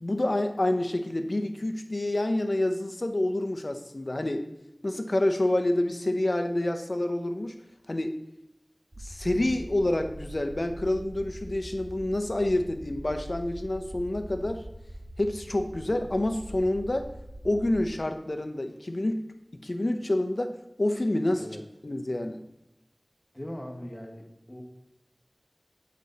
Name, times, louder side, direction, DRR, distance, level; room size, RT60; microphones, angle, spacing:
voice 1, 0.0-4.5 4.8-7.6 7.9-8.2 9.0-14.6 15.2-17.1 17.4-19.2 19.6-21.5 21.8-22.4, left 1 dB, 65° left, 6 dB, 0.8 m, -28 dB
Low Rumble Lisa Hammer, 8.9-17.9, right 1 dB, 50° right, 1.0 m, -43 dB
voice 2, 23.3-24.6, equal, 15° left, 0 dB, 1.7 m, -40 dB
8.4 x 5.2 x 4.1 m, 0.92 s
wide cardioid pair, 40°, 0 cm